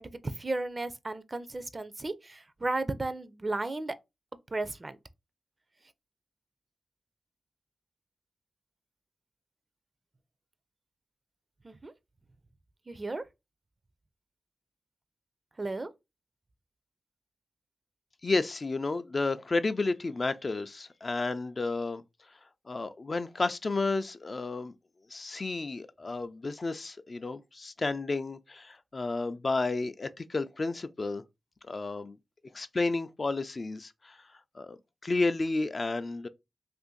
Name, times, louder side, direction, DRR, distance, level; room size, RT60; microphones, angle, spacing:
voice 1, 0.0-4.0 4.5-5.0 11.6-11.9 12.9-13.2 15.6-15.9, right 2 dB, 35° right, 0.4 m, -34 dB
voice 2, 18.2-22.0 22.7-24.7 25.1-31.2 31.6-32.2 32.5-34.2 34.5-36.3, left 3 dB, 45° left, 0.3 m, -32 dB
2.6 x 2.5 x 3.7 m
cardioid pair, 45°, 0 cm